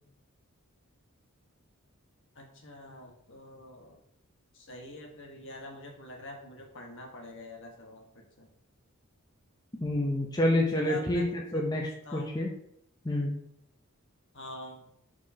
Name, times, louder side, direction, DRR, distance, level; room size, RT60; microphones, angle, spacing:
voice 1, 2.3-4.0 4.5-8.5 10.7-12.4 14.3-14.9, left 1 dB, 60° left, 1 dB, 1.4 m, -45 dB
voice 2, 9.8-12.5 13.0-13.4, left 1 dB, 20° left, -1 dB, 0.7 m, -28 dB
4.8 x 4.6 x 5.7 m, 0.72 s
head